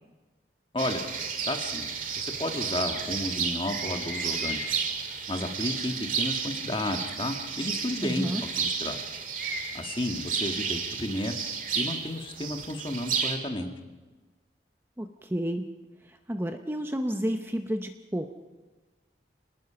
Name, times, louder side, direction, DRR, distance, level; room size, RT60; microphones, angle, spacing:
voice 1, 0.7-1.0 1.4-1.9 2.2-8.3 8.6-9.0 9.7-11.3 11.8-13.7, left 1 dB, 30° left, 4 dB, 1.8 m, -32 dB
sound 1, 0.8-13.4, right 6 dB, 45° right, 2.1 m, -32 dB
voice 2, 8.0-8.4 15.0-15.7 16.1-18.3, equal, 15° right, 6 dB, 0.7 m, -31 dB
27.0 x 19.0 x 5.8 m, 1.3 s
head